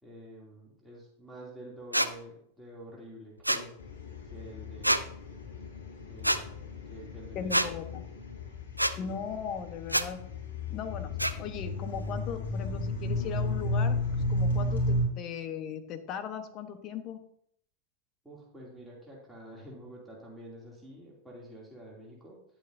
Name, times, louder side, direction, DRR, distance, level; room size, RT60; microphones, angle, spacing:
voice 1, 0.0-3.7 4.2-5.3 6.1-7.8 8.8-9.3 11.3-11.5 18.2-22.4, right 1 dB, 5° right, -4 dB, 2.8 m, -48 dB
sound 1, 1.9-2.1 3.4-3.6 4.8-5.0 6.2-6.4 7.5-7.7 8.8-8.9 9.9-10.1 11.2-11.3, right 1 dB, 85° right, 0.4 m, -26 dB
sound 2, 3.8-15.0, left 1 dB, 65° left, 3.6 m, -33 dB
voice 2, 7.3-8.0 9.0-10.2 10.7-11.1 11.4-14.0 14.3-17.2, left 7 dB, 35° left, 9 dB, 1.1 m, -38 dB
11.0 x 8.4 x 2.7 m, 0.70 s
figure-of-eight pair, 90°, 0 cm